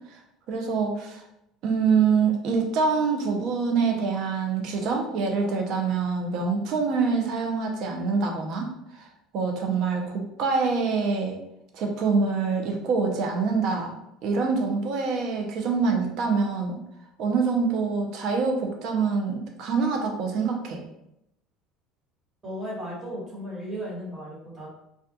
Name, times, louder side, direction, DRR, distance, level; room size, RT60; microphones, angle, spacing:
voice 1, 0.5-1.2 1.6-9.1 9.3-11.4 11.7-13.9 14.2-16.8 17.2-20.8, right 5 dB, 60° right, 2 dB, 0.6 m, -25 dB
voice 2, 22.4-24.7, equal, 30° right, -6 dB, 1.3 m, -35 dB
2.3 x 2.2 x 2.7 m, 0.82 s
supercardioid pair, 105°, 0 cm